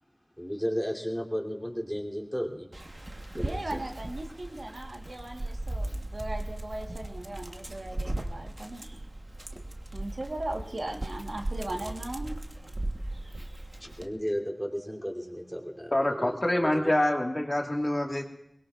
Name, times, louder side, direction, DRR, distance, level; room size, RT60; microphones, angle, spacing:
voice 1, 0.4-2.7 3.3-3.8 13.8-16.9, equal, ahead, -2 dB, 3.0 m, -34 dB
Dog, 2.7-14.1, right 1 dB, 45° right, 1.1 m, -37 dB
voice 2, 3.4-8.9 9.9-12.4, right 1 dB, 80° right, 2 dB, 1.3 m, -38 dB
voice 3, 15.9-18.2, left 1 dB, 35° left, 1 dB, 1.7 m, -26 dB
23.0 x 21.0 x 2.4 m, 0.79 s
wide cardioid pair, 55°, 0 cm